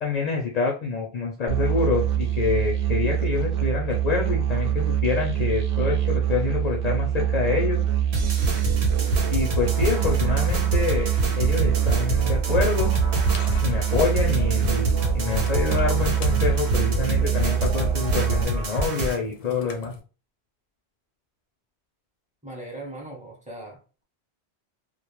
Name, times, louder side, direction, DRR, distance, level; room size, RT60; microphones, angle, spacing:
voice 1, 0.0-7.8 9.3-11.1 11.4-12.9 13.6-19.9, left 5 dB, 55° left, 1 dB, 0.5 m, -27 dB
Musical instrument, 1.5-18.4, right 10 dB, 65° right, 0.7 m, -24 dB
sound 1, 8.1-19.2, equal, 90° right, 1.0 m, -27 dB
sound 2, 12.9-20.0, left 5 dB, 90° left, 0.9 m, -39 dB
voice 2, 22.4-24.0, right 1 dB, 10° right, -2 dB, 0.6 m, -39 dB
2.2 x 2.1 x 2.9 m, 0.35 s
omnidirectional pair, 1.1 m